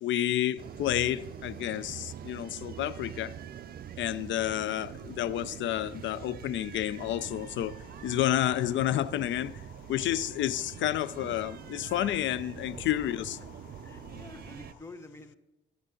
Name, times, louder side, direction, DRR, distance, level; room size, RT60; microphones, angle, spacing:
voice 1, 0.0-3.3 4.0-9.6 9.9-13.4, left 12 dB, 70° left, 0.4 m, -30 dB
sound 1, 0.6-14.7, right 9 dB, 50° right, 0.5 m, -44 dB
sound 2, 7.1-14.8, left 4 dB, 85° left, 3.1 m, -54 dB
voice 2, 12.7-13.3 13.8-15.4, left 2 dB, 15° left, 1.0 m, -48 dB
13.0 x 8.3 x 3.8 m
cardioid pair, 90°, 20 cm